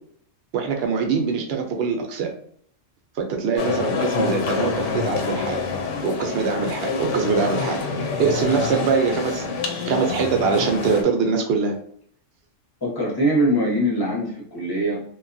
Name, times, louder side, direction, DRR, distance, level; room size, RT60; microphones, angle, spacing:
voice 1, 0.5-2.3 3.2-5.6 6.0-7.8 8.2-11.8, right 5 dB, 60° right, 3 dB, 0.7 m, -23 dB
sound 1, 3.6-11.0, left 5 dB, 75° left, 0.9 m, -27 dB
voice 2, 12.8-15.0, right 1 dB, 20° left, -3 dB, 0.7 m, -22 dB
2.8 x 2.3 x 2.5 m, 0.62 s
omnidirectional pair, 1.3 m